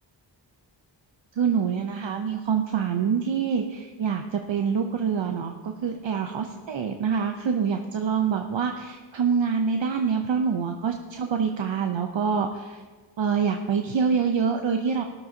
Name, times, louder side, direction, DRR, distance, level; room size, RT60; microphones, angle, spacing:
voice 1, 1.3-12.8 13.2-15.0, right 6 dB, 70° right, 5 dB, 0.7 m, -26 dB
13.5 x 11.0 x 2.8 m, 1.4 s
cardioid pair, 40°, 47 cm